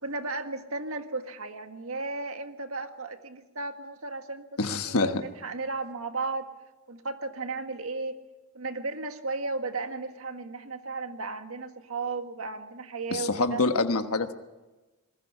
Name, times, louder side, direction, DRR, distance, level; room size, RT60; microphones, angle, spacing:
voice 1, 0.0-6.5 6.9-8.2 8.5-13.6, right 3 dB, 70° right, 7 dB, 1.7 m, -35 dB
voice 2, 4.6-5.1 13.1-14.3, left 3 dB, 85° left, 7 dB, 1.3 m, -26 dB
27.0 x 20.0 x 5.7 m, 1.1 s
head